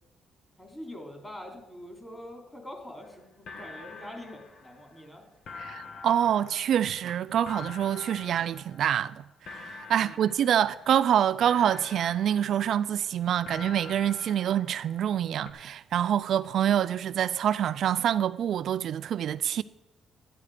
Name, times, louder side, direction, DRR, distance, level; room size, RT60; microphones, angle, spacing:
voice 1, 0.6-5.2 10.0-10.2, left 1 dB, 15° left, 3.5 m, -44 dB
sound 1, 3.0-3.1 3.5-5.1 5.5-9.2 9.5-11.1 11.5-13.1 13.5-15.2 15.5-15.6, left 5 dB, 65° left, 1.6 m, -46 dB
voice 2, 5.5-19.6, right 10 dB, 70° right, 0.3 m, -26 dB
12.0 x 11.0 x 5.0 m
cardioid pair, 90°, 0 cm